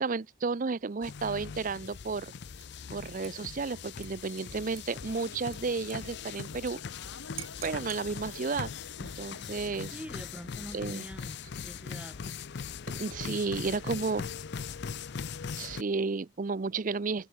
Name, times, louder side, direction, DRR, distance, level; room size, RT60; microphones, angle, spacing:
voice 1, 0.0-2.3 2.9-6.8 7.6-8.7 9.0-9.9 10.7-11.0 12.9-14.2 15.6-17.3, right 4 dB, 40° right, 0.5 m, -32 dB
sound 1, 1.0-15.8, left 6 dB, 55° left, 0.5 m, -40 dB
Dishes pots and pans / Liquid, 2.6-2.9 3.2-6.7 7.0-7.1 7.4-8.1 8.9-9.4, right 14 dB, 90° right, 3.4 m, -49 dB
sound 2, 5.0-10.4, left 4 dB, 85° left, 1.3 m, -51 dB
voice 2, 9.9-12.4 13.1-14.2, equal, 5° right, 4.6 m, -46 dB
head